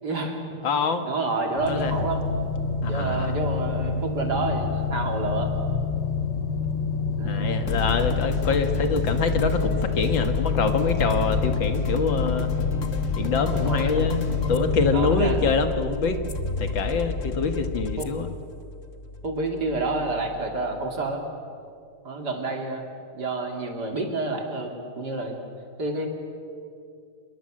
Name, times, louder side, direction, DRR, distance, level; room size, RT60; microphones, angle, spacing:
voice 1, 0.0-0.6 1.0-2.4 2.8-5.5 7.1-7.5 13.6-13.9 14.9-15.4 18.0-18.1 19.2-21.2 22.0-22.8 23.1-25.4 25.8-26.1, right 2 dB, 50° right, 3 dB, 3.4 m, -29 dB
voice 2, 0.6-1.0 1.7-1.9 2.8-3.4 7.2-12.5 13.2-14.2 14.5-16.2 16.6-18.3, left 5 dB, 65° left, 7 dB, 2.3 m, -25 dB
sound 1, 1.5-14.9, left 4 dB, 85° left, 3.3 m, -28 dB
sound 2, 7.7-21.1, left 4 dB, 35° left, 1.5 m, -30 dB
28.0 x 22.0 x 7.8 m, 2.4 s
omnidirectional pair, 2.4 m